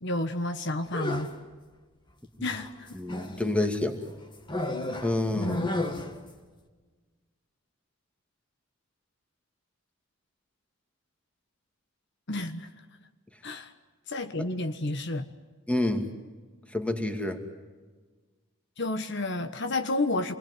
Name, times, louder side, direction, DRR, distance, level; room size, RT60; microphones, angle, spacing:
voice 1, 0.0-1.3 2.4-2.9 5.3-5.7 12.3-12.7 13.4-13.7 14.1-15.3 18.8-20.3, left 2 dB, 55° left, 7 dB, 1.3 m, -30 dB
sound 1, 0.8-1.4 2.5-3.5 4.5-6.3, left 1 dB, 20° left, 2.0 m, -33 dB
voice 2, 2.9-4.0 5.0-5.7 14.4-14.5 15.7-16.1 16.7-17.4, left 2 dB, 5° left, 5 dB, 2.5 m, -28 dB
28.0 x 21.5 x 9.6 m, 1.4 s
head